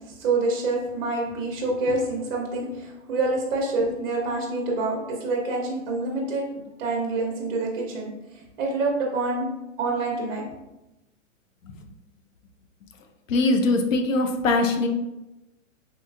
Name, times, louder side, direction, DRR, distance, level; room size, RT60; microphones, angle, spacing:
voice 1, 0.2-9.5 9.8-10.4, right 3 dB, 50° right, -2 dB, 0.7 m, -27 dB
voice 2, 13.3-14.9, left 2 dB, 85° left, 5 dB, 0.6 m, -21 dB
3.3 x 2.9 x 2.4 m, 0.98 s
hypercardioid pair, 175°, 38 cm